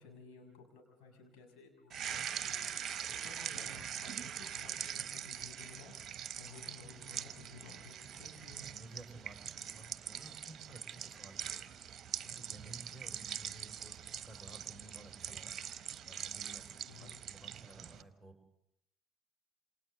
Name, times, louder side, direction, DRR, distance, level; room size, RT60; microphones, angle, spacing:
voice 1, 0.0-5.9 6.4-8.6 16.9-17.2, left 5 dB, 55° left, 2 dB, 6.7 m, -55 dB
sound 1, 1.9-18.0, right 9 dB, 40° right, 1.1 m, -43 dB
voice 2, 8.7-11.7 12.2-15.5 16.0-18.3, right 2 dB, 5° left, 3 dB, 5.8 m, -55 dB
28.5 x 27.0 x 3.9 m, 0.74 s
figure-of-eight pair, 55°, 0 cm